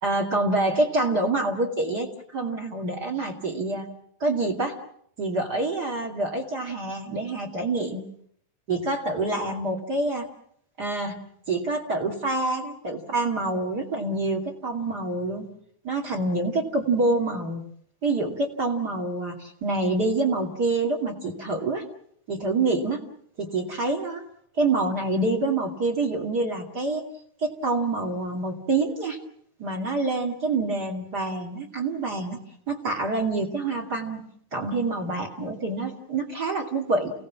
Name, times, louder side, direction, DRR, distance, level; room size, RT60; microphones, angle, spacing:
voice 1, 0.0-3.9 4.2-4.8 5.2-8.0 8.7-10.2 10.8-11.2 11.5-15.5 15.8-17.6 18.0-21.8 22.3-23.0 23.4-24.2 24.6-27.0 27.4-29.2 29.6-32.4 32.7-34.2 34.5-37.1, right 2 dB, 30° right, 4 dB, 2.5 m, -26 dB
30.0 x 17.5 x 7.4 m, 0.66 s
omnidirectional pair, 4.2 m